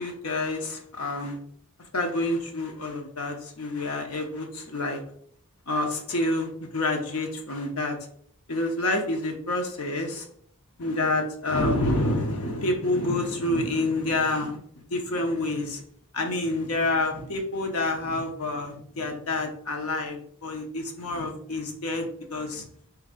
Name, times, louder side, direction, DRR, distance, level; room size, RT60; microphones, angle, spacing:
voice 1, 0.0-1.4 1.9-5.0 5.7-8.0 8.5-10.3 10.8-14.6 14.9-15.8 16.1-22.7, left 2 dB, 75° left, 3 dB, 0.8 m, -28 dB
4.4 x 3.0 x 3.7 m, 0.65 s
head